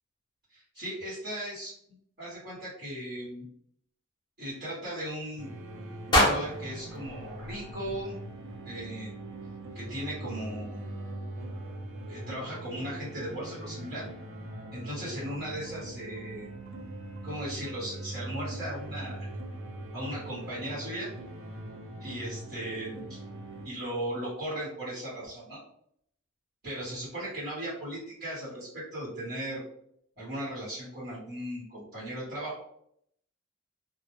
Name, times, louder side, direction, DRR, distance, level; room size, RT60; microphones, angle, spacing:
voice 1, 0.5-1.7 2.2-3.5 4.4-5.5 6.2-8.2 8.6-9.1 9.7-11.0 12.1-14.1 14.7-16.5 17.2-19.3 19.9-21.1 22.0-23.2 23.6-25.6 26.6-29.6 30.2-32.6, right 1 dB, 45° right, -10 dB, 1.0 m, -37 dB
sound 1, 5.4-23.7, right 1 dB, 65° right, 0.4 m, -41 dB
sound 2, 6.1-8.3, left 1 dB, 20° left, 0.6 m, -28 dB
2.1 x 2.1 x 3.0 m, 0.71 s
head